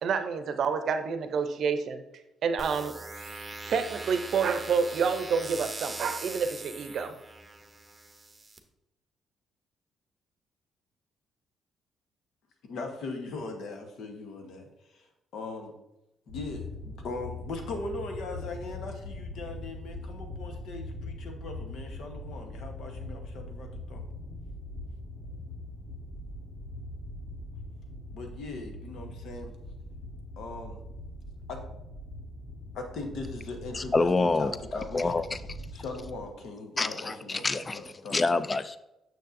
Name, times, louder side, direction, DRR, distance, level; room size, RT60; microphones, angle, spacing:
voice 1, 0.0-2.0 2.4-7.1, right 6 dB, 65° right, 9 dB, 0.6 m, -29 dB
sound 1, 2.6-8.6, right 2 dB, 25° right, 0.8 m, -41 dB
voice 2, 12.6-15.7 16.3-24.0 28.1-29.5 30.4-30.8 31.5-31.6 32.7-35.1 35.7-38.2, left 3 dB, 75° left, 4 dB, 1.1 m, -39 dB
sound 2, 16.3-36.2, left 1 dB, 60° left, 1.9 m, -42 dB
voice 3, 33.7-34.5 34.9-35.4 36.8-37.8 38.1-38.8, left 3 dB, 25° left, 14 dB, 0.4 m, -26 dB
6.5 x 6.5 x 2.6 m, 0.91 s
cardioid pair, 90°, 0 cm